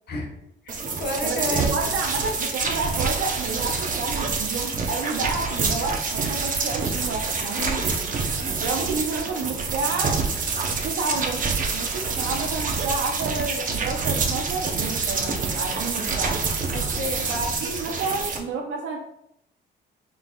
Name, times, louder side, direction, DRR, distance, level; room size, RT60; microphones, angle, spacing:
voice 1, 0.6-1.8 7.5-8.0 16.7-17.3, left 1 dB, 55° left, 0 dB, 1.2 m, -31 dB
sound 1, 0.7-18.4, right 4 dB, 45° right, 0.8 m, -27 dB
voice 2, 1.2-7.6 8.6-10.2 10.8-11.4 11.7-16.4 17.3-19.0, right 4 dB, 85° right, 1 dB, 0.6 m, -30 dB
4.7 x 3.9 x 2.3 m, 0.78 s
cardioid pair, 90°, 20 cm